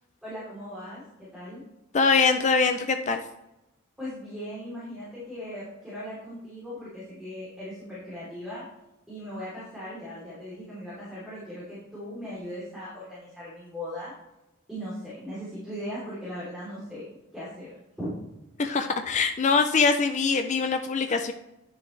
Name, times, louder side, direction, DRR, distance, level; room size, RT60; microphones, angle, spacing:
voice 1, 0.2-1.6 4.0-8.6 9.1-14.1 14.7-17.0 17.3-17.7 18.0-18.1, equal, ahead, -10 dB, 3.3 m, -38 dB
voice 2, 1.9-3.2 18.6-21.3, left 4 dB, 35° left, 6 dB, 0.5 m, -23 dB
11.0 x 6.9 x 3.3 m, 0.94 s
head